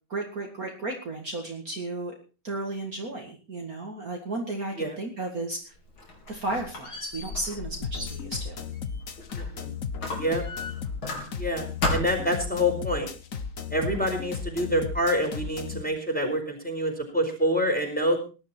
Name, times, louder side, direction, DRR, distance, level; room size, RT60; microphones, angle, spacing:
voice 1, 0.1-2.1 2.4-5.7 6.3-8.6 15.7-15.9, right 2 dB, 45° right, 1 dB, 2.4 m, -34 dB
Squeak, 5.7-9.5 10.0-11.5 11.8-12.4, left 2 dB, 75° left, 5.2 m, -34 dB
sound 1, 7.8-15.8, left 6 dB, 45° left, 1.4 m, -35 dB
voice 2, 9.3-9.7 10.2-10.4 11.4-13.1 13.7-18.2, equal, 5° left, 1 dB, 4.6 m, -27 dB
19.0 x 11.5 x 4.4 m, 0.34 s
omnidirectional pair, 2.2 m